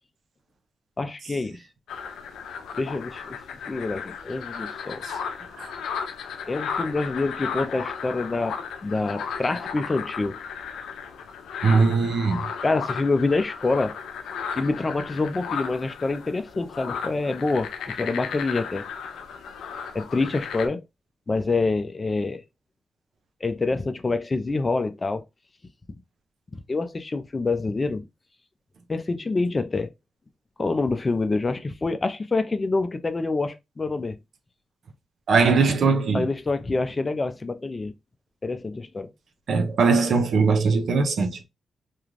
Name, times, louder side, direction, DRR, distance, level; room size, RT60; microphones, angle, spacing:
voice 1, 1.0-1.6 2.8-3.4 3.7-5.0 6.5-10.4 12.6-14.0 14.5-18.8 19.9-20.8 21.3-22.4 23.4-25.2 26.7-28.1 28.9-29.9 30.6-34.2 36.1-37.9 38.4-39.1, left 3 dB, 35° left, 0.4 m, -26 dB
sound 1, 1.9-20.7, left 6 dB, 90° left, 0.4 m, -35 dB
voice 2, 11.6-12.5 35.3-36.2 39.5-41.4, right 4 dB, 70° right, 0.6 m, -20 dB
2.4 x 2.3 x 3.1 m
cardioid pair, 65°, 0 cm